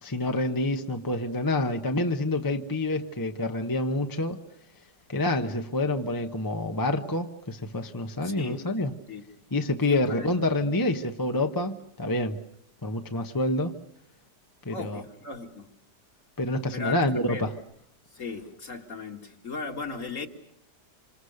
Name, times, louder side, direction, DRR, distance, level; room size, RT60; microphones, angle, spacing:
voice 1, 0.0-4.4 5.1-8.9 9.5-12.4 12.8-13.8 14.6-15.0 16.4-17.5, left 1 dB, 15° left, 0.9 m, -27 dB
voice 2, 8.2-8.7 9.1-9.2 9.9-10.7 14.7-15.7 16.7-17.0 17.3-17.4 18.1-20.3, left 4 dB, 45° left, 2.5 m, -37 dB
27.5 x 26.5 x 6.6 m
omnidirectional pair, 1.8 m